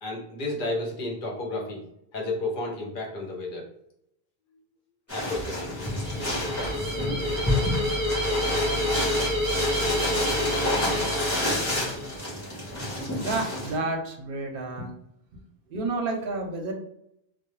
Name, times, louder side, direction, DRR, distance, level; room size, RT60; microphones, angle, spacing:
voice 1, 0.0-1.8 2.1-3.7 5.1-5.9, left 2 dB, 55° left, -1 dB, 0.8 m, -32 dB
sound 1, 5.1-13.7, left 1 dB, 15° left, 0.8 m, -29 dB
sound 2, 5.8-12.2, left 1 dB, 10° right, 0.9 m, -29 dB
voice 2, 13.2-14.9 15.7-16.7, right 3 dB, 65° right, 3 dB, 0.7 m, -30 dB
2.2 x 2.0 x 3.0 m, 0.76 s
omnidirectional pair, 1.1 m